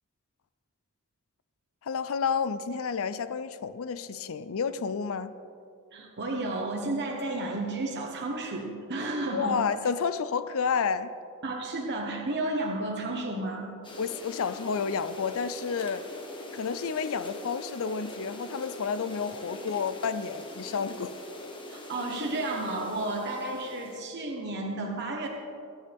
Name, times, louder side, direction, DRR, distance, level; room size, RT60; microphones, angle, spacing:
voice 1, 1.8-5.3 9.3-11.1 14.0-16.1 16.5-21.1, left 6 dB, 65° left, 13 dB, 0.5 m, -30 dB
voice 2, 5.9-9.6 11.4-13.7 21.7-25.3, right 2 dB, 50° right, 0 dB, 1.2 m, -32 dB
sound 1, 13.8-24.0, left 1 dB, 20° left, 1.4 m, -42 dB
22.0 x 9.7 x 3.5 m, 2.5 s
head